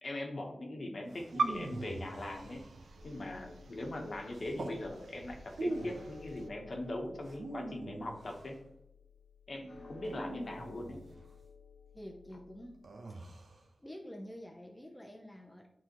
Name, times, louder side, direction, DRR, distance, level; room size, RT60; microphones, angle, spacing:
voice 1, 0.0-2.6 3.0-8.5 9.5-11.0, left 1 dB, 50° left, 2 dB, 1.2 m, -41 dB
sound 1, 1.1-3.1 4.3-4.8 5.5-6.2 7.2-8.6 10.0-11.3 12.8-13.6, right 2 dB, 70° right, 1.0 m, -43 dB
sound 2, 1.3-6.5, right 4 dB, 90° right, 0.6 m, -42 dB
sound 3, 3.0-12.8, left 5 dB, 75° left, 0.9 m, -55 dB
voice 2, 9.5-10.1 11.9-12.9 13.8-15.7, equal, 10° left, 0 dB, 0.8 m, -48 dB
9.0 x 4.1 x 3.1 m, 0.82 s
wide cardioid pair, 110°, 0 cm